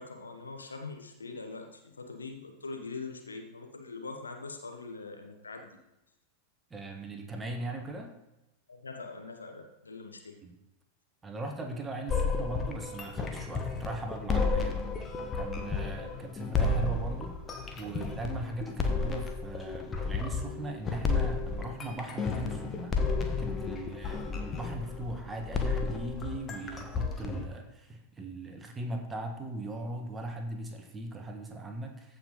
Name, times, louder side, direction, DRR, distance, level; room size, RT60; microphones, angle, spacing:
voice 1, 0.0-5.8 8.7-10.4 15.8-16.0, left 3 dB, 75° left, 4 dB, 1.4 m, -43 dB
voice 2, 6.7-8.1 10.4-10.5 11.2-14.9 15.3-17.4 17.8-23.0 23.4-32.2, right 2 dB, 15° right, 3 dB, 1.5 m, -39 dB
sound 1, 12.1-27.5, left 4 dB, 20° left, 1.3 m, -32 dB
15.0 x 5.4 x 4.0 m, 0.93 s
figure-of-eight pair, 90°, 0 cm